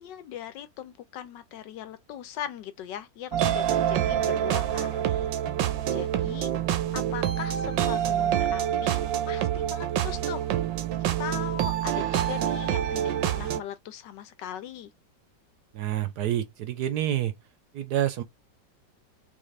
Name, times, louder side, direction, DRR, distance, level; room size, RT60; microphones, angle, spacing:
voice 1, 0.0-5.3 5.9-6.5 6.9-10.5 11.2-14.9, left 10 dB, 75° left, 1.4 m, -39 dB
sound 1, 3.3-13.6, right 10 dB, 90° right, 1.4 m, -26 dB
voice 2, 15.7-17.3 17.7-18.2, right 11 dB, 70° right, 1.1 m, -28 dB
3.9 x 3.5 x 3.3 m
omnidirectional pair, 2.0 m